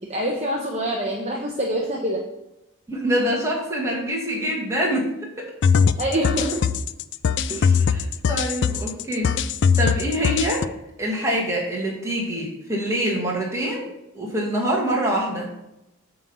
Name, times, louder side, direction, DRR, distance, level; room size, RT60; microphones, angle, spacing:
voice 1, 0.0-2.2 6.0-6.7 7.5-7.7, right 1 dB, 30° right, -1 dB, 0.9 m, -26 dB
voice 2, 2.9-5.1 5.4-5.5 7.5-9.3 9.8-10.7 11.0-15.5, equal, 15° right, -3 dB, 2.0 m, -25 dB
sound 1, 5.6-10.7, left 6 dB, 50° left, 0.3 m, -21 dB
8.9 x 3.8 x 7.0 m, 0.88 s
head